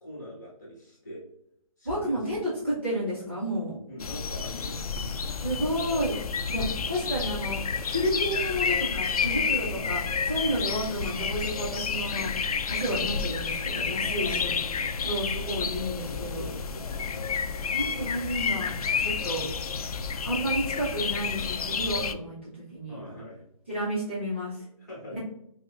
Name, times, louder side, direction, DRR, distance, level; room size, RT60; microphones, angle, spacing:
voice 1, 0.0-1.2 1.8-2.5 3.9-5.1 6.5-6.8 9.7-10.0 10.4-10.6 12.1-12.3 14.2-15.1 15.6-18.3 22.9-23.4 24.8-25.2, equal, 30° left, -4 dB, 1.4 m, -44 dB
voice 2, 1.8-3.7 5.4-6.2 6.5-7.6 7.9-10.0 10.3-12.3 12.7-14.5 15.0-16.4 17.7-19.5 20.2-22.4 22.7-23.0 23.7-24.6 25.1-25.2, equal, 20° right, -9 dB, 0.7 m, -31 dB
sound 1, 4.0-22.1, left 6 dB, 80° left, 0.4 m, -30 dB
5.3 x 2.1 x 2.4 m, 0.76 s
hypercardioid pair, 180°, 19 cm